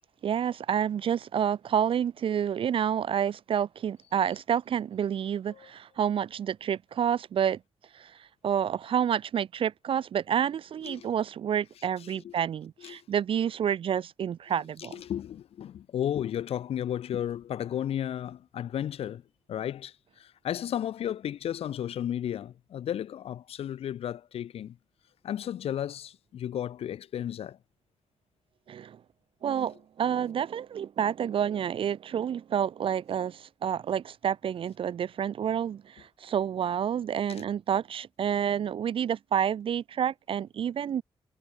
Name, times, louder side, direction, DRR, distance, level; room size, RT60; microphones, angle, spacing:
voice 1, 0.2-7.6 7.9-8.1 8.4-14.9 28.7-29.0 29.4-41.0, right 9 dB, 65° right, 0.5 m, -29 dB
voice 2, 12.0-12.3 12.8-13.0 14.8-19.2 19.5-24.8 25.2-27.6 37.3-37.4, left 10 dB, 85° left, 0.7 m, -34 dB
wide cardioid pair, 130°, 10 cm